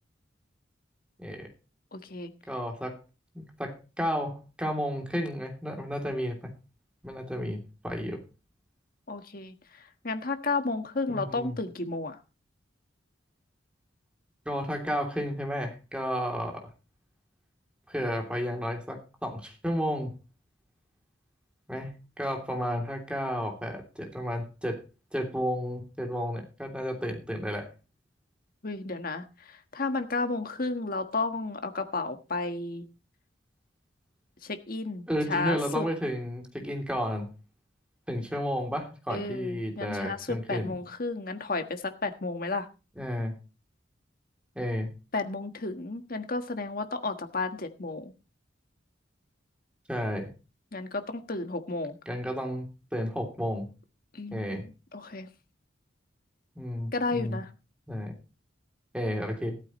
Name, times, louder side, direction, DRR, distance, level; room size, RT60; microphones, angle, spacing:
voice 1, 1.2-1.5 2.5-3.0 3.3-6.5 7.0-8.2 11.1-11.6 14.4-16.7 17.9-20.1 21.7-24.8 25.1-27.7 35.1-37.3 38.1-40.7 43.0-43.4 44.5-44.9 49.9-50.3 52.1-52.7 52.9-53.7 54.3-54.6 56.5-57.4 57.9-58.2 58.9-59.6, equal, 5° right, 2 dB, 3.1 m, -32 dB
voice 2, 1.9-2.3 9.1-12.2 28.6-32.9 34.4-35.9 39.1-42.7 45.1-48.1 50.7-52.0 54.1-54.6 54.9-55.3 56.9-57.5, left 3 dB, 50° left, 7 dB, 1.5 m, -32 dB
15.0 x 13.5 x 3.1 m, 0.31 s
head